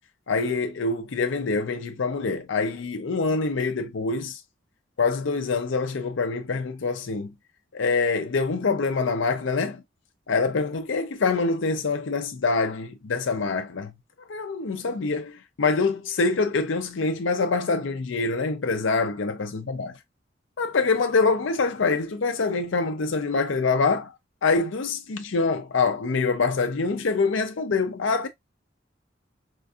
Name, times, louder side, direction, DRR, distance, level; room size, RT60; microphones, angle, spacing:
voice 1, 0.3-4.4 5.0-7.3 7.7-9.8 10.3-13.9 14.3-20.0 20.6-24.1 24.4-28.3, left 4 dB, 80° left, 0.6 m, -25 dB
4.5 x 2.4 x 2.5 m
head